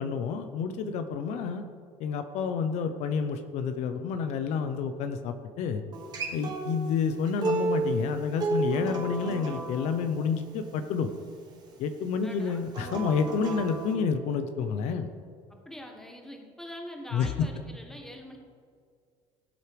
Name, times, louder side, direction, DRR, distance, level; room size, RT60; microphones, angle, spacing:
voice 1, 0.0-1.6 2.0-5.8 6.3-11.1 11.8-15.1 17.1-17.5, left 6 dB, 70° left, 8 dB, 0.8 m, -29 dB
Acoustic guitar, 5.9-11.1 12.7-13.9, right 3 dB, 35° right, 1.8 m, -33 dB
voice 2, 12.1-12.6 15.5-18.4, equal, 5° left, 2 dB, 1.5 m, -44 dB
17.0 x 7.9 x 3.4 m, 2.1 s
cardioid pair, 130°, 12 cm